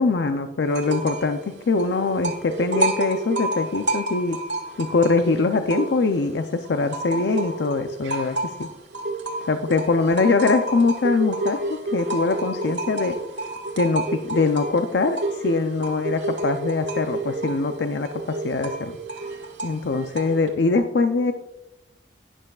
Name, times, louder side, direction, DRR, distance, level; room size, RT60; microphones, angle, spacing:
voice 1, 0.0-4.4 4.8-8.7 9.4-13.2 13.8-18.9 19.6-21.3, left 3 dB, 70° left, 7 dB, 0.5 m, -23 dB
sound 1, 0.7-1.3 1.6-6.3 6.6-20.5, right 2 dB, 85° right, 1.6 m, -30 dB
12.0 x 10.0 x 2.3 m, 0.94 s
head